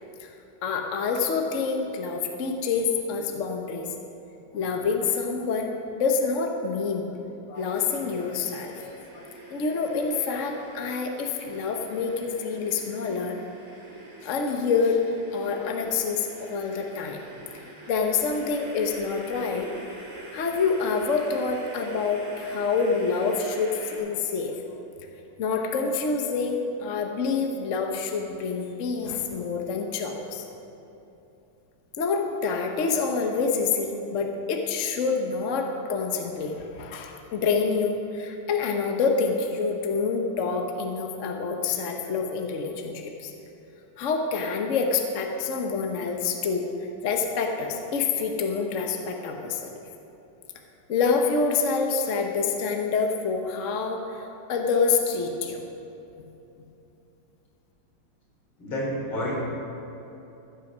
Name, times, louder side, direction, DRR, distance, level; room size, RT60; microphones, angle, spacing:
voice 1, 0.6-3.9 4.5-13.4 14.2-15.0 15.3-17.2 17.5-19.7 20.3-24.6 25.4-30.5 32.0-43.3 44.0-46.7 47.0-49.7 50.9-55.7, left 5 dB, 50° left, 3 dB, 1.0 m, -27 dB
sound 1, 7.5-24.0, right 1 dB, 30° right, 2.8 m, -45 dB
voice 2, 58.6-59.4, equal, 65° left, -5 dB, 4.5 m, -29 dB
14.5 x 8.2 x 6.1 m, 2.9 s
omnidirectional pair, 2.4 m